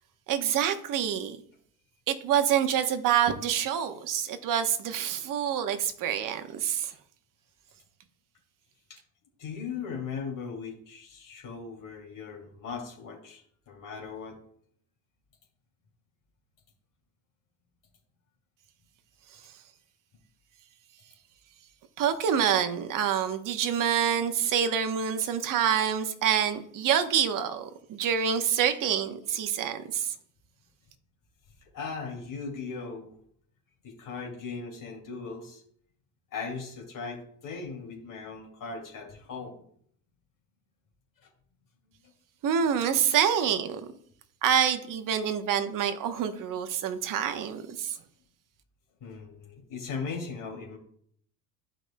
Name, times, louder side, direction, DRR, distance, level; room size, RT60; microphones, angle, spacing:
voice 1, 0.3-1.4 2.1-6.9 22.0-30.1 42.4-43.8 44.4-47.9, right 8 dB, 40° right, 8 dB, 1.1 m, -27 dB
voice 2, 9.4-14.4 31.7-33.2 33.8-35.6 36.3-39.6 41.2-41.3 49.0-50.8, left 5 dB, 40° left, -1 dB, 2.5 m, -38 dB
12.0 x 5.1 x 2.2 m, 0.63 s
hypercardioid pair, 80°, 47 cm